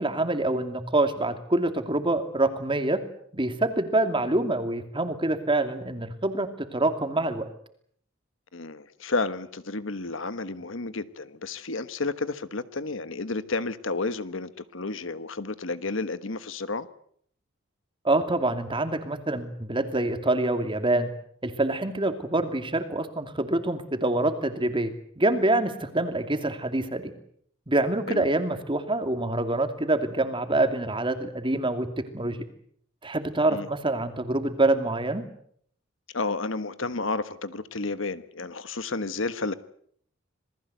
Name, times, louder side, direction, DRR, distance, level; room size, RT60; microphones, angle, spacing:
voice 1, 0.0-3.0 3.3-7.5 18.0-21.1 21.4-27.1 27.7-32.4 33.0-35.2, right 2 dB, 25° right, 8 dB, 2.6 m, -26 dB
voice 2, 8.5-16.9 28.1-28.2 33.5-33.7 36.1-39.5, left 3 dB, 65° left, 13 dB, 1.3 m, -31 dB
27.5 x 19.5 x 8.1 m, 0.64 s
head